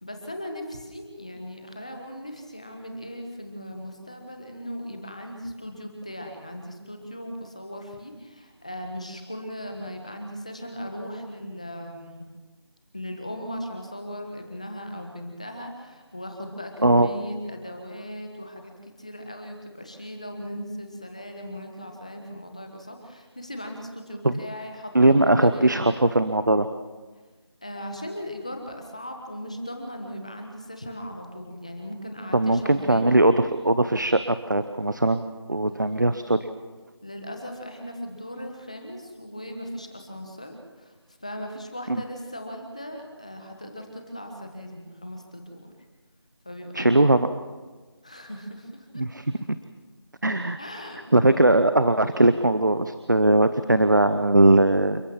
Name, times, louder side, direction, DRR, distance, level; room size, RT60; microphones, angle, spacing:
voice 1, 0.0-12.2 12.9-25.8 27.6-33.1 37.0-40.9 41.2-45.7 46.4-47.1 48.0-49.0 50.6-51.1, equal, 15° left, 4 dB, 1.3 m, -38 dB
voice 2, 24.9-26.7 32.3-35.2 35.5-36.4 41.9-42.0 46.7-47.3 48.9-49.3 50.2-50.6 51.1-55.0, right 2 dB, 45° right, 11 dB, 0.9 m, -20 dB
29.0 x 12.5 x 7.4 m, 1.3 s
figure-of-eight pair, 180°, 14 cm